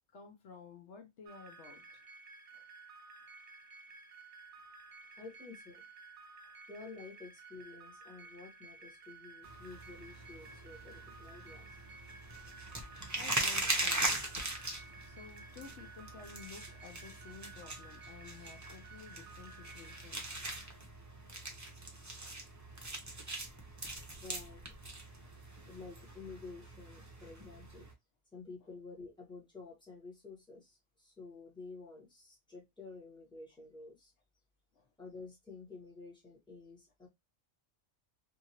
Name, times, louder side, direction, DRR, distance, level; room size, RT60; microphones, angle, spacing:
voice 1, 0.1-2.0 2.5-2.6 13.1-14.4 14.9-20.4 25.2-25.3 28.6-28.7 34.7-34.9, left 5 dB, 70° left, 0.9 m, -53 dB
sound 1, 1.3-20.1, right 3 dB, 70° right, 0.8 m, -54 dB
voice 2, 5.2-5.8 6.7-11.7 24.2-24.6 25.7-27.9 28.3-34.1 35.0-37.1, left 4 dB, 5° left, 1.1 m, -51 dB
sound 2, 9.4-27.9, right 2 dB, 20° right, 0.5 m, -41 dB
2.7 x 2.5 x 2.8 m
omnidirectional pair, 1.2 m